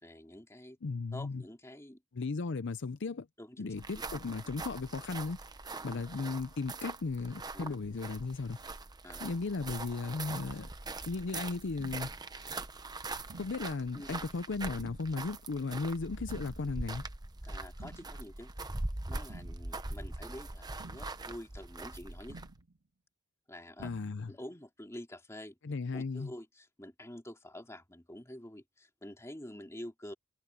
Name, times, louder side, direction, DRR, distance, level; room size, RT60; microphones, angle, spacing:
voice 1, 0.0-0.8 1.1-2.0 3.4-3.7 5.7-6.0 7.5-7.7 9.0-9.4 13.9-14.1 17.4-18.5 19.1-22.4 23.5-23.9 24.3-25.6 25.9-30.1, left 1 dB, 15° left, 2.7 m, -47 dB
voice 2, 0.8-1.4 2.1-3.3 3.6-5.4 5.8-8.6 9.2-10.7 11.1-12.1 13.4-17.1 23.8-24.3 25.6-26.3, left 4 dB, 55° left, 0.5 m, -36 dB
sound 1, 3.7-22.6, right 2 dB, 20° right, 0.8 m, -42 dB
sound 2, 10.3-10.8 11.8-12.3 13.3-13.8 14.8-15.3 16.3-16.8 17.8-18.3 19.3-19.8 20.8-21.3 22.3-22.8 23.8-24.3, right 2 dB, 65° right, 1.8 m, -51 dB
head